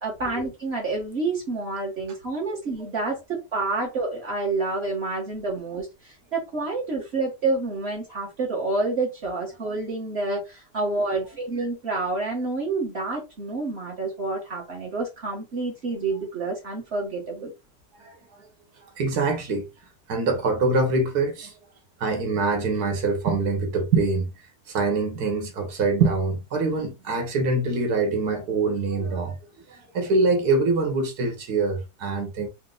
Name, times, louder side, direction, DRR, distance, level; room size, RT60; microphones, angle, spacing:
voice 1, 0.0-17.5, right 3 dB, 45° right, 1.3 m, -28 dB
voice 2, 18.0-18.5 19.0-19.6 20.1-21.5 22.0-24.3 24.7-29.4 29.7-32.5, right 3 dB, 85° right, 1.6 m, -24 dB
4.5 x 2.2 x 3.8 m
omnidirectional pair, 1.6 m